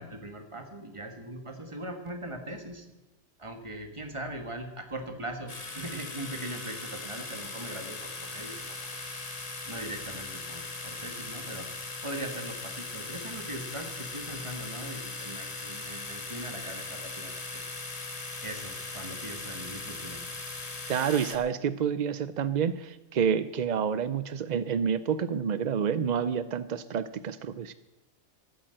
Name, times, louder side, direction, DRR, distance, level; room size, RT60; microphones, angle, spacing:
voice 1, 0.0-2.9 3.4-9.0 9.7-11.7 12.0-17.6 18.0-20.2, right 1 dB, 20° right, 5 dB, 1.7 m, -40 dB
sound 1, 5.5-21.4, left 3 dB, 30° left, 1.3 m, -39 dB
voice 2, 20.9-27.7, right 7 dB, 75° right, 14 dB, 0.4 m, -28 dB
14.0 x 8.7 x 7.8 m, 0.99 s
omnidirectional pair, 1.4 m